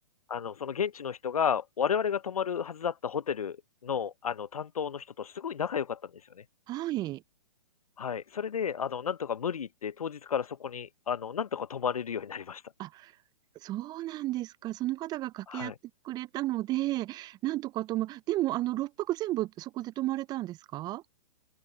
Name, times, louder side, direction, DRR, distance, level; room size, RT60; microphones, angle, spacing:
voice 1, 0.3-3.6 3.8-6.1 6.4-6.5 8.0-12.6 15.5-15.7, left 7 dB, 75° left, 0.9 m, -32 dB
voice 2, 6.7-7.2 12.8-13.1 13.6-15.7 16.0-21.0, right 16 dB, 20° right, 0.7 m, -33 dB
open air
figure-of-eight pair, 120°, 19 cm